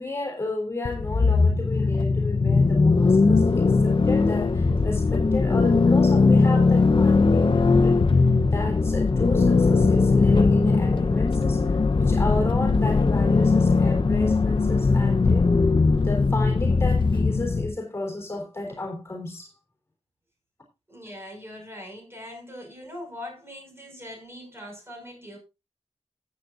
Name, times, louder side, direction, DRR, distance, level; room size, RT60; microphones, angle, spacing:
voice 1, 0.0-8.3 8.5-15.5 16.0-19.5, left 2 dB, 25° left, 3.7 m, -33 dB
sound 1, 0.8-17.7, left 4 dB, 50° left, 0.8 m, -20 dB
voice 2, 20.9-25.4, left 1 dB, 20° right, 5.7 m, -41 dB
15.5 x 8.5 x 2.6 m
wide cardioid pair, 85°, 11 cm